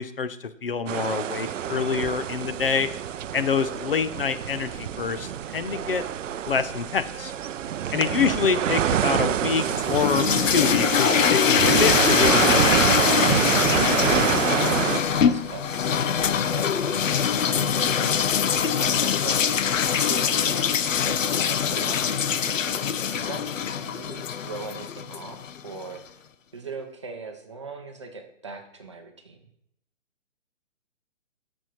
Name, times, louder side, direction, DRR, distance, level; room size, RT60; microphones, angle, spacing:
voice 1, 0.0-2.9 3.3-6.0 6.5-7.3 7.9-13.4, left 6 dB, 45° left, 12 dB, 0.7 m, -26 dB
sound 1, 0.9-15.0, right 10 dB, 75° right, 0.5 m, -26 dB
sound 2, 1.8-15.6, equal, 25° left, 1.9 m, -49 dB
sound 3, 9.6-25.6, left 7 dB, 75° left, 0.8 m, -23 dB
voice 2, 14.5-19.4 20.0-22.7 23.1-26.2 26.5-29.5, right 4 dB, 25° right, 4 dB, 0.7 m, -40 dB
13.5 x 6.3 x 4.5 m, 0.79 s
hypercardioid pair, 175°, 39 cm